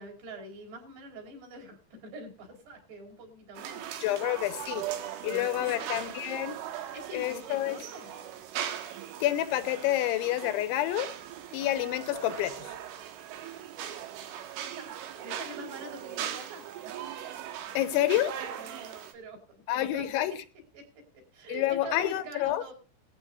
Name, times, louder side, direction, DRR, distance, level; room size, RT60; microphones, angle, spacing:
voice 1, 0.0-3.9 5.3-5.8 6.9-8.1 13.8-17.2 18.6-20.3 20.7-20.9 21.3-22.7, right 1 dB, 60° right, 6.8 m, -45 dB
sound 1, 3.6-19.1, right 10 dB, 85° right, 4.2 m, -39 dB
voice 2, 4.0-4.9 5.2-6.6 7.1-7.8 9.2-11.1 11.5-12.8 17.8-18.3 19.7-20.3 21.5-22.6, left 13 dB, 80° left, 3.3 m, -28 dB
19.0 x 14.5 x 2.6 m
omnidirectional pair, 5.5 m